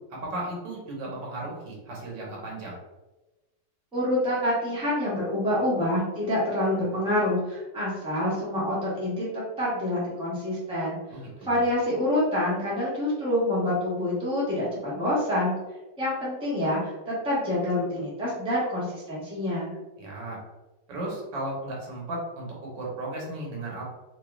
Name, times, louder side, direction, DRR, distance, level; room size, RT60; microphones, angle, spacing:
voice 1, 0.1-2.8 11.1-11.6 20.0-20.4 20.9-23.8, right 1 dB, 85° right, -3 dB, 1.7 m, -35 dB
voice 2, 3.9-11.0 11.4-15.5 16.0-19.8, left 1 dB, 5° right, -7 dB, 0.7 m, -27 dB
3.3 x 3.1 x 2.3 m, 1.1 s
omnidirectional pair, 1.9 m